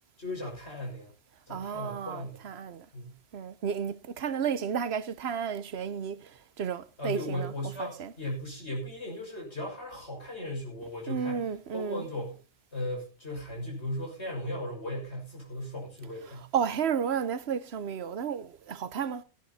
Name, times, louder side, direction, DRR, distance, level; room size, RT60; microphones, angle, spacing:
voice 1, 0.2-1.1 1.5-2.4 2.9-3.2 7.0-11.5 11.7-12.4 12.7-16.5, left 1 dB, 85° left, 6.6 m, -37 dB
voice 2, 1.5-2.9 3.3-7.5 7.8-8.1 11.1-12.0 16.5-19.2, right 7 dB, 75° right, 1.1 m, -32 dB
17.0 x 10.0 x 4.2 m
omnidirectional pair, 1.1 m